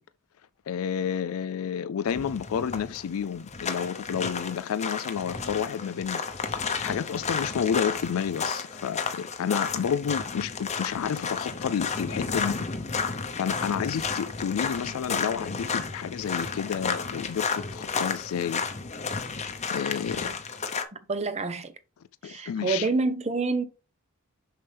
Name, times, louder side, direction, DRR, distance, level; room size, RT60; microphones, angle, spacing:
voice 1, 0.7-12.6 13.4-18.6 19.7-20.3 22.2-22.9, left 7 dB, 75° left, 0.4 m, -30 dB
sound 1, 2.1-20.8, left 5 dB, 30° left, 0.8 m, -32 dB
voice 2, 21.1-21.7 22.2-23.6, right 3 dB, 30° right, 0.8 m, -27 dB
6.7 x 5.7 x 3.4 m
head